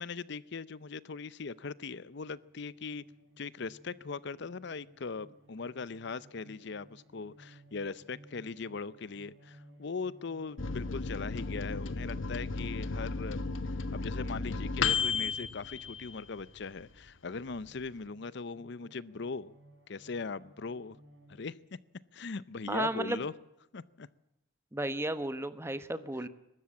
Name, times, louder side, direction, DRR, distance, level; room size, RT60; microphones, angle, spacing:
voice 1, 0.0-3.0 3.4-13.5 13.9-19.5 19.9-21.0 21.3-21.6 22.1-23.3 23.7-24.1, left 4 dB, 60° left, 0.6 m, -40 dB
sound 1, 2.0-21.4, right 1 dB, 75° right, 5.1 m, -60 dB
Microwave oven, 10.6-16.7 17.1-17.2 17.4-18.1, left 4 dB, 80° left, 1.2 m, -34 dB
voice 2, 22.7-23.2 24.7-26.3, right 2 dB, 15° right, 1.1 m, -33 dB
23.0 x 13.0 x 8.5 m
head